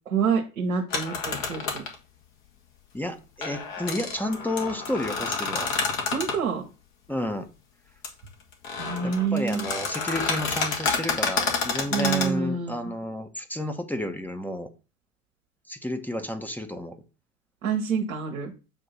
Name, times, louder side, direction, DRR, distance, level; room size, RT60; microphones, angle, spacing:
voice 1, 0.1-1.8 6.1-6.6 8.8-9.6 11.9-12.9 17.6-18.5, right 6 dB, 80° right, -1 dB, 1.1 m, -27 dB
sound 1, 0.9-2.0 3.4-6.4 8.0-8.1 8.5-12.3, left 4 dB, 55° left, 1.8 m, -29 dB
voice 2, 2.9-5.7 7.1-7.5 9.0-14.7 15.7-17.0, left 1 dB, 5° left, 6 dB, 0.9 m, -31 dB
7.5 x 2.7 x 5.6 m, 0.32 s
figure-of-eight pair, 70°, 41 cm